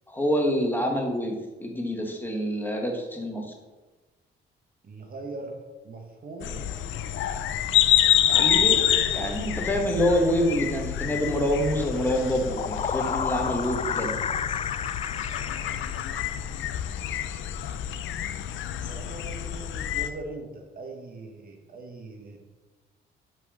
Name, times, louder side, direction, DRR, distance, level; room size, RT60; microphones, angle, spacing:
voice 1, 0.1-3.5 8.3-14.1, equal, 10° left, 1 dB, 1.6 m, -26 dB
voice 2, 4.8-6.7 18.8-22.4, right 2 dB, 45° right, 3 dB, 1.5 m, -41 dB
sound 1, 6.4-20.1, left 11 dB, 75° left, 0.6 m, -27 dB
sound 2, 12.3-16.7, left 7 dB, 30° left, 0.3 m, -32 dB
6.2 x 5.5 x 6.4 m, 1.2 s
cardioid pair, 90°, 20 cm